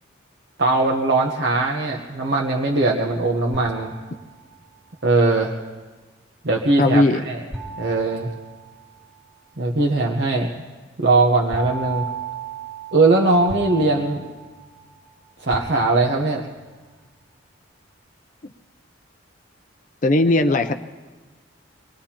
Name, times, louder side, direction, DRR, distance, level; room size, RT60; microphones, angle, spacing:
voice 1, 0.6-3.9 5.0-5.5 6.4-7.4 7.8-8.3 9.6-10.5 11.0-12.1 12.9-14.3 15.4-16.4, right 3 dB, 55° right, 0 dB, 1.0 m, -20 dB
sound 1, 3.5-4.7 7.5-9.2 11.5-15.1 15.5-16.5, right 5 dB, ahead, 1.7 m, -35 dB
voice 2, 6.8-7.2 20.0-20.7, left 2 dB, 40° left, 8 dB, 0.5 m, -17 dB
25.0 x 19.5 x 2.9 m, 1.3 s
head